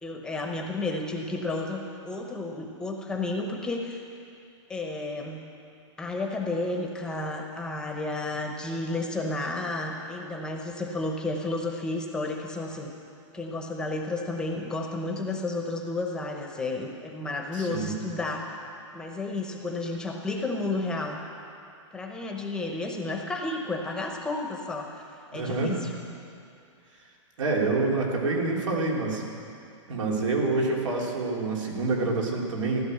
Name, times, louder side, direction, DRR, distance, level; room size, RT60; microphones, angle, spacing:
voice 1, 0.0-4.0 4.7-5.4 6.0-12.9 13.3-18.6 18.9-21.2 21.9-25.0 25.3-25.9, left 2 dB, 5° left, 2 dB, 0.9 m, -32 dB
voice 2, 17.5-18.0 25.3-25.8 27.4-29.2 29.9-32.8, right 3 dB, 85° right, -1 dB, 3.5 m, -27 dB
15.5 x 12.0 x 7.9 m, 2.5 s
hypercardioid pair, 165°, 16 cm